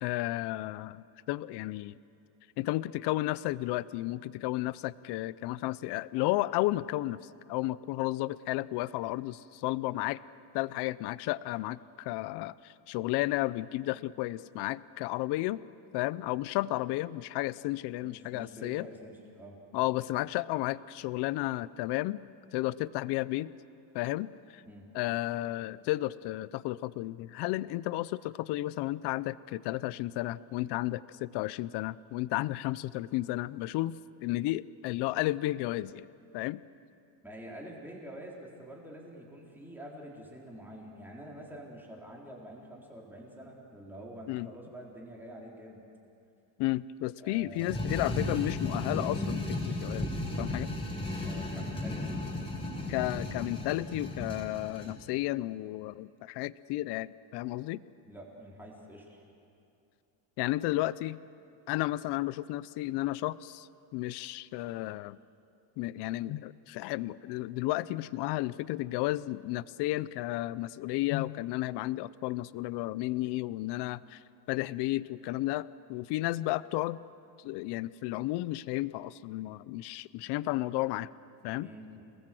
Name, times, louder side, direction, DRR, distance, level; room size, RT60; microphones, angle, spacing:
voice 1, 0.0-1.9 2.6-7.2 7.5-10.2 10.5-15.6 15.9-18.9 19.7-22.2 22.5-23.5 23.9-24.6 24.9-36.1 36.3-36.6 44.3-44.5 46.6-50.1 50.4-50.7 52.9-57.8 60.4-61.2 61.7-63.7 63.9-65.2 65.8-74.2 74.5-77.0 77.4-81.1 81.4-81.7, left 17 dB, 60° left, 18 dB, 0.7 m, -33 dB
voice 2, 18.0-19.6 24.6-24.9 37.2-45.8 47.2-47.8 51.2-52.0 58.1-59.2 81.6-82.0, right 1 dB, 5° right, -3 dB, 3.8 m, -47 dB
sound 1, 47.6-55.0, left 2 dB, 10° left, 4.8 m, -35 dB
28.5 x 20.0 x 7.7 m, 2.7 s
cardioid pair, 165°, 47 cm